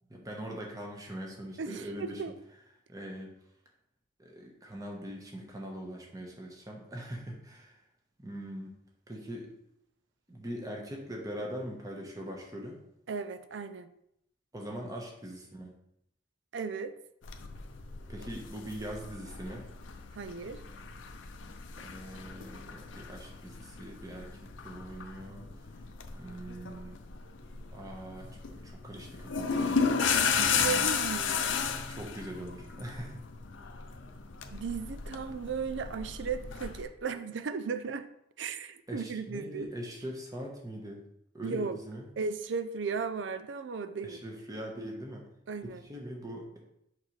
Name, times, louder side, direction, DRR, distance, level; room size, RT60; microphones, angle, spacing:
voice 1, 0.1-2.2 2.9-3.3 4.2-7.8 8.2-8.8 9.1-9.5 10.3-12.8 14.5-15.7 18.1-19.6 21.8-25.5 26.1-27.0 27.7-30.9 31.9-33.2 38.9-41.0 41.3-42.1 44.0-45.2 45.6-46.6, equal, 20° right, 0 dB, 1.1 m, -42 dB
voice 2, 1.6-2.3 13.1-13.9 16.5-16.9 20.1-20.6 30.2-31.6 34.5-38.1 38.4-39.7 41.4-41.8 42.2-44.2 45.5-45.8, right 5 dB, 75° right, 11 dB, 0.5 m, -36 dB
sound 1, 17.2-36.8, left 6 dB, 80° left, 0.6 m, -35 dB
6.4 x 5.3 x 3.2 m, 0.78 s
head